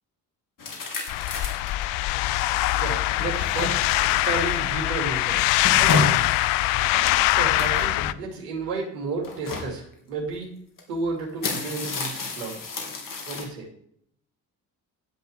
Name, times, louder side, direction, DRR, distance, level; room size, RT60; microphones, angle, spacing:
sound 1, 0.6-1.8 2.4-2.5 3.0-4.2 5.3-6.3 7.6-8.2 9.2-9.7 10.8-10.9 11.2-13.4, left 3 dB, 40° left, 3.3 m, -30 dB
sound 2, 1.1-8.1, left 17 dB, 60° left, 0.7 m, -23 dB
voice 1, 2.8-5.5 5.8-6.4 6.9-10.5 10.9-12.5 13.3-13.7, right 4 dB, 70° right, 1 dB, 2.8 m, -32 dB
10.5 x 9.3 x 4.7 m, 0.67 s
figure-of-eight pair, 45°, 49 cm